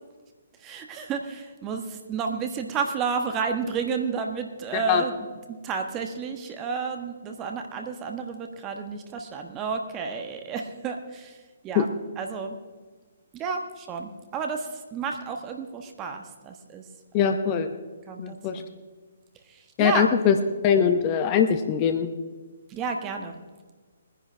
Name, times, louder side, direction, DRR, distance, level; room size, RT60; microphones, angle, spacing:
voice 1, 0.6-11.9 12.2-12.6 13.3-16.9 17.1-17.3 18.1-18.8 19.5-20.1 22.7-23.4, right 5 dB, 20° right, 4 dB, 1.4 m, -31 dB
voice 2, 4.7-5.0 11.8-11.9 17.1-17.7 18.2-18.6 19.8-20.4 20.6-22.1, left 8 dB, 30° left, 8 dB, 1.0 m, -22 dB
22.0 x 10.5 x 3.4 m, 1.4 s
figure-of-eight pair, 135°, 0 cm